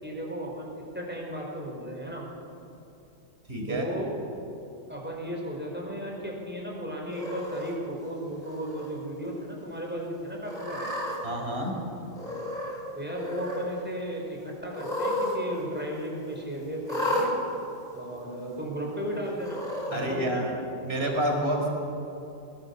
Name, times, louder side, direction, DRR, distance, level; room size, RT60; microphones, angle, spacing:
voice 1, 0.0-2.3 3.7-4.1 4.9-10.9 12.9-17.3 17.9-19.6 19.9-20.4, equal, 5° right, -1 dB, 4.8 m, -35 dB
voice 2, 3.5-3.9 11.2-11.8 19.9-20.5 20.8-21.7, right 1 dB, 35° right, 0 dB, 4.8 m, -28 dB
Cat, 7.1-7.7 8.4-8.9 9.2-9.3 10.4-11.2 12.1-12.8 13.1-13.6 14.7-15.4 15.6-15.7 16.9-17.3 18.2-18.3 19.4-20.0, left 1 dB, 25° left, 5.0 m, -32 dB
22.0 x 22.0 x 7.2 m, 2.8 s
omnidirectional pair, 1.8 m